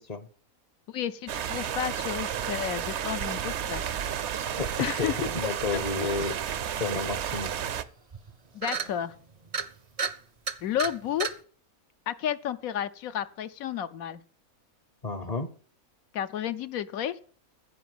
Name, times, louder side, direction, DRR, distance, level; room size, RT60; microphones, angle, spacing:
voice 1, 0.9-3.8 4.8-5.3 5.7-6.2 8.5-9.1 10.6-11.3 12.1-14.2 16.1-17.2, left 10 dB, 75° left, 1.1 m, -32 dB
sound 1, 1.3-7.8, right 9 dB, 60° right, 0.9 m, -32 dB
voice 2, 4.6-6.4 6.8-7.5 15.0-15.5, left 4 dB, 35° left, 0.7 m, -31 dB
sound 2, 7.7-7.8 8.1-8.3 8.6-8.9 9.5-9.7 10.0-10.1 10.5-10.9 11.2-11.3, right 5 dB, 40° right, 0.5 m, -31 dB
14.5 x 5.1 x 7.9 m
omnidirectional pair, 1.5 m